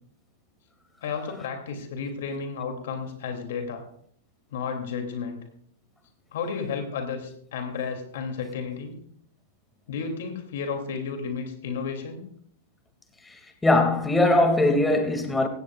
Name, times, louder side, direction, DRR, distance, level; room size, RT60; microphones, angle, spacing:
voice 1, 1.0-3.8 4.5-5.4 6.3-8.9 9.9-12.2, left 5 dB, 70° left, 2.7 m, -32 dB
voice 2, 13.6-15.5, left 2 dB, 10° left, 2.3 m, -20 dB
16.5 x 15.5 x 2.4 m
hypercardioid pair, 115°, 0 cm